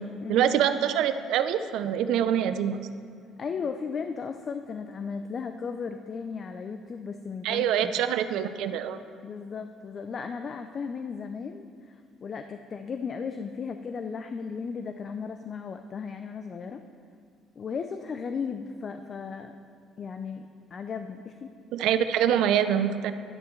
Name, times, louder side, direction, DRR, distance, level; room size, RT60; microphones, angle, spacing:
voice 1, 0.3-2.8 7.4-9.0 21.7-23.1, right 9 dB, 75° right, 10 dB, 0.5 m, -25 dB
voice 2, 3.4-8.0 9.2-16.8 17.6-19.6 20.0-21.5, left 5 dB, 35° left, 7 dB, 0.4 m, -36 dB
11.5 x 11.5 x 3.1 m, 2.2 s
cardioid pair, 125°, 0 cm